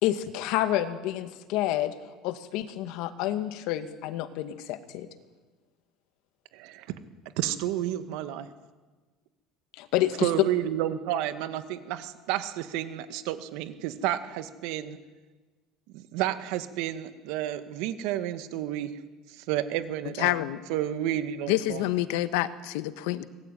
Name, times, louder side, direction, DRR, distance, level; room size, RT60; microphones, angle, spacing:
voice 1, 0.0-1.9 2.2-5.1 9.7-10.3, left 13 dB, 65° left, 9 dB, 2.1 m, -29 dB
voice 2, 6.5-6.9 7.4-8.5 10.2-15.0 15.9-19.0 19.4-20.4 20.7-21.8, right 12 dB, 75° right, 10 dB, 2.0 m, -31 dB
voice 3, 20.2-20.6 21.5-23.2, left 15 dB, 85° left, 12 dB, 1.4 m, -27 dB
25.0 x 20.5 x 9.3 m, 1.3 s
cardioid pair, 150°, 0 cm